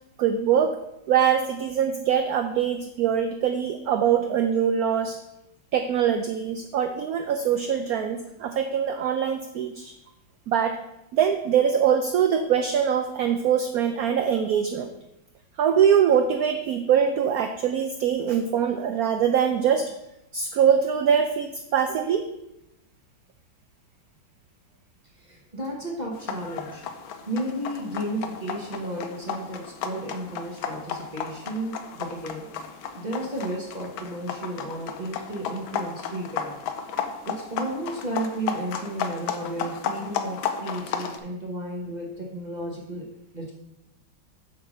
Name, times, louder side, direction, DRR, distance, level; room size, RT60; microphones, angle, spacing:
voice 1, 0.2-0.8 1.1-5.2 5.7-9.9 10.5-10.8 11.1-14.9 15.6-19.9 20.3-22.3, right 8 dB, 85° right, 7 dB, 0.8 m, -23 dB
voice 2, 25.2-26.8 27.3-32.5 33.0-36.6 37.2-43.1 43.3-43.5, right 1 dB, 30° right, -2 dB, 1.0 m, -33 dB
sound 1, 26.1-41.2, left 7 dB, 85° left, 1.4 m, -34 dB
7.3 x 3.9 x 6.3 m, 0.88 s
omnidirectional pair, 2.1 m